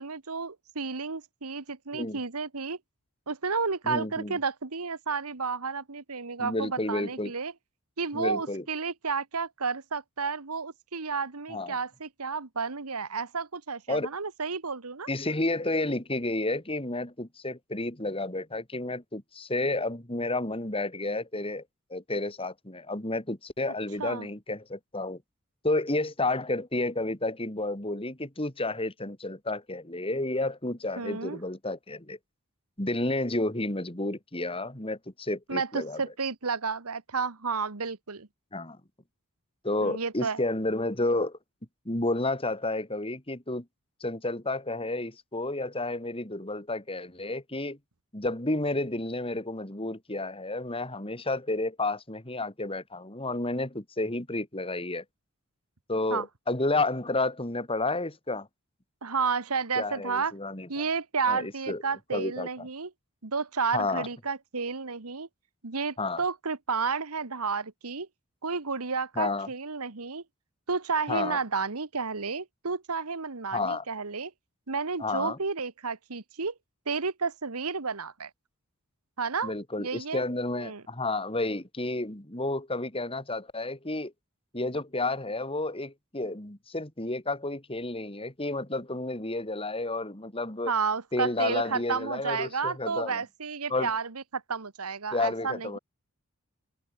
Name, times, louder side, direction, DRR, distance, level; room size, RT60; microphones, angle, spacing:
voice 1, 0.0-2.8 3.3-7.5 8.0-15.1 24.0-24.3 31.0-31.4 35.5-38.3 39.8-40.4 56.1-56.3 59.0-60.3 60.7-62.9 63.2-65.3 65.6-68.1 68.4-70.2 70.7-74.3 74.7-76.5 76.8-78.3 79.2-80.2 80.6-80.8 90.7-95.8, right 5 dB, 80° right, 1.5 m, -31 dB
voice 2, 3.8-4.4 6.4-7.3 8.1-8.6 11.5-11.8 13.9-14.1 15.1-21.6 21.9-25.2 25.6-32.2 32.8-36.0 38.5-38.8 39.6-41.4 41.8-43.6 44.0-47.8 48.1-55.0 55.9-58.5 59.8-60.7 61.3-61.8 62.1-62.7 63.7-64.1 66.0-66.2 69.2-69.5 71.1-71.4 73.5-73.8 75.0-75.4 79.4-84.1 84.5-90.7 91.1-93.2 93.7-93.9 95.1-95.8, left 2 dB, 25° left, 3.2 m, -31 dB
head